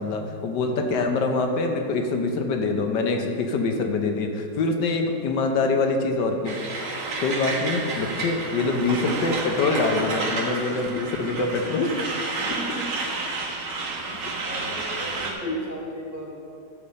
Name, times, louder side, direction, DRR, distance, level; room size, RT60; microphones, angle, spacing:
voice 1, 0.0-6.5 7.2-11.9 15.4-15.6, left 3 dB, 80° left, 4 dB, 1.4 m, -24 dB
Truck, 6.4-15.3, right 3 dB, 80° right, 1.9 m, -30 dB
voice 2, 12.4-12.9 13.3-13.7 14.1-16.3, equal, 10° right, -5 dB, 1.5 m, -39 dB
11.5 x 7.1 x 4.2 m, 2.4 s
omnidirectional pair, 1.9 m